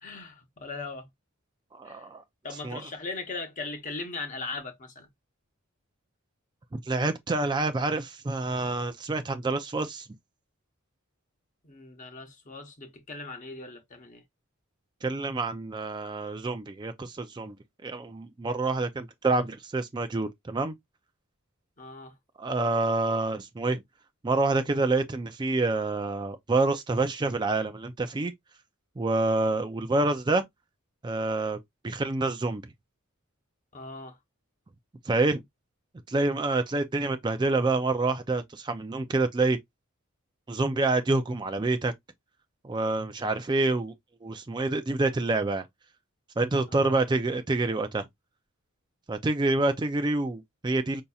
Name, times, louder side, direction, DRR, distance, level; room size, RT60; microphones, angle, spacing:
voice 1, 0.0-1.1 1.8-2.0 2.4-5.1 11.6-14.2 21.8-22.1 33.7-34.2 46.7-47.0, left 3 dB, 35° left, 0.9 m, -39 dB
voice 2, 1.7-2.2 2.6-2.8 6.7-10.1 15.0-17.6 17.8-20.7 22.4-23.8 24.2-28.3 29.0-30.4 31.0-31.6 31.8-32.6 35.0-35.4 36.1-39.6 40.5-41.9 42.6-43.9 44.2-45.7 46.4-48.1 49.1-51.0, right 2 dB, 20° right, 0.4 m, -27 dB
5.2 x 2.7 x 2.3 m
head